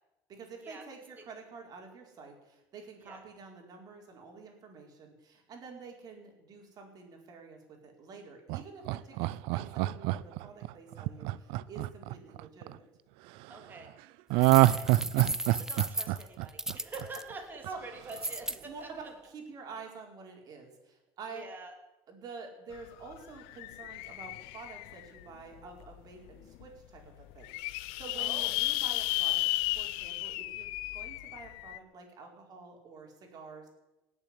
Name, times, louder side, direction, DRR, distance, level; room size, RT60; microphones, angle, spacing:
voice 1, 0.3-12.8 17.6-17.8 18.7-21.5 22.1-29.4 29.7-33.7, right 4 dB, 45° right, 2 dB, 4.6 m, -48 dB
Laughter, 8.5-12.7 14.3-17.3 17.6-17.7, right 18 dB, 75° right, 0.5 m, -26 dB
voice 2, 13.5-13.9 14.4-15.2 15.5-18.9 21.3-21.7 28.2-28.5, right 3 dB, 20° right, 2 dB, 3.3 m, -46 dB
sound 1, 14.4-17.2 18.1-18.6, right 1 dB, 5° right, 0.5 m, -35 dB
sound 2, 22.7-22.8 23.1-25.2 25.8-25.9 26.3-26.4 26.5-26.6 27.2-31.8, left 19 dB, 80° left, 0.6 m, -34 dB
18.0 x 7.4 x 10.0 m, 0.99 s
cardioid pair, 130°, 9 cm